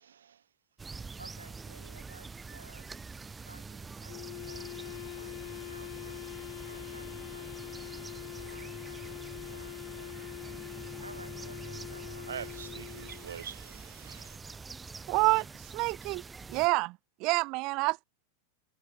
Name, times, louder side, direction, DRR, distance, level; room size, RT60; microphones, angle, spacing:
sound 1, 0.8-16.7, right 4 dB, 15° right, 5.3 m, -45 dB
voice 1, 1.2-2.9 3.4-7.5 8.1-10.5 11.0-12.5, right 2 dB, 85° right, 4.9 m, -55 dB
Wind instrument woodwind instrument, 4.1-13.3, left 35 dB, 45° left, 2.5 m, -44 dB
voice 2, 12.3-14.4, right 8 dB, 65° right, 1.2 m, -44 dB
voice 3, 15.1-15.5 15.7-16.2 16.5-18.0, right 24 dB, 40° right, 0.6 m, -28 dB
figure-of-eight pair, 90°, 0 cm